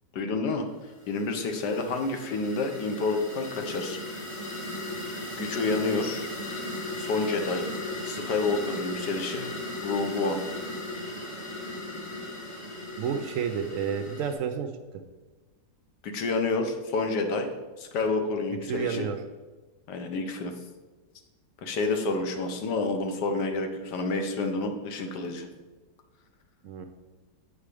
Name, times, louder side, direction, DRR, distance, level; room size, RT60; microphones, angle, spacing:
voice 1, 0.1-0.6 1.1-4.0 5.4-6.3 7.0-7.7 8.0-9.5 9.8-10.4 16.0-17.5 17.8-19.1 19.9-20.5 21.6-25.5, left 3 dB, 70° left, 5 dB, 1.5 m, -29 dB
sound 1, 1.0-14.3, left 1 dB, 25° left, 0.8 m, -37 dB
voice 2, 13.0-14.7 18.7-19.2 26.6-26.8, right 7 dB, 70° right, 7 dB, 0.7 m, -30 dB
8.2 x 5.0 x 4.9 m, 1.3 s
omnidirectional pair, 2.0 m